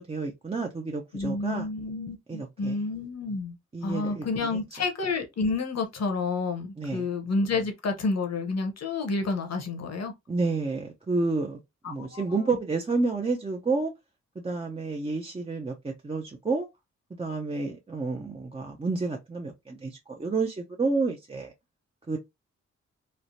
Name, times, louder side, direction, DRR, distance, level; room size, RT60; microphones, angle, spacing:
voice 1, 0.0-1.7 2.3-2.8 3.7-4.6 6.8-7.1 10.3-11.6 11.9-13.9 14.4-16.7 17.2-21.5 22.1-22.2, right 3 dB, 20° right, 0.6 m, -30 dB
voice 2, 1.1-3.6 3.8-10.1 11.8-12.6, left 3 dB, 60° left, 0.9 m, -30 dB
3.2 x 2.0 x 2.6 m
cardioid pair, 50°, 30 cm